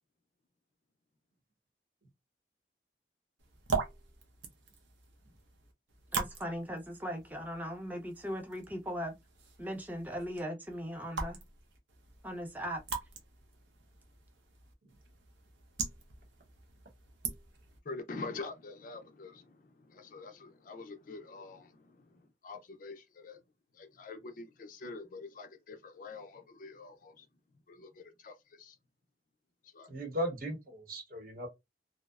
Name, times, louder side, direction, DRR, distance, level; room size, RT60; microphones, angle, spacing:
sound 1, 3.4-17.8, right 5 dB, 85° right, 0.7 m, -42 dB
voice 1, 6.1-9.1 9.6-11.4 12.2-12.8, equal, 10° right, 0.5 m, -38 dB
voice 2, 17.9-19.6 19.9-22.0 22.4-23.4 23.8-27.2 27.7-28.8 29.7-29.9, left 3 dB, 50° left, 0.4 m, -45 dB
voice 3, 29.9-31.5, equal, 50° right, 0.8 m, -37 dB
2.7 x 2.0 x 2.3 m
head